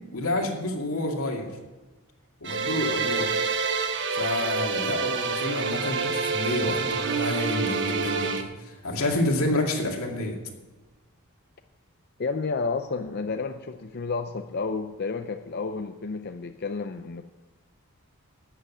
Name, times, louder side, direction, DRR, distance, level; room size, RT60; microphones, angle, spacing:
voice 1, 0.1-1.5 2.4-3.4 4.1-10.4, left 1 dB, 80° left, 2 dB, 2.2 m, -29 dB
sound 1, 2.4-8.4, right 5 dB, 55° right, 1.1 m, -27 dB
voice 2, 12.2-17.2, left 4 dB, 50° left, 7 dB, 0.5 m, -31 dB
13.0 x 7.9 x 7.3 m, 1.2 s
head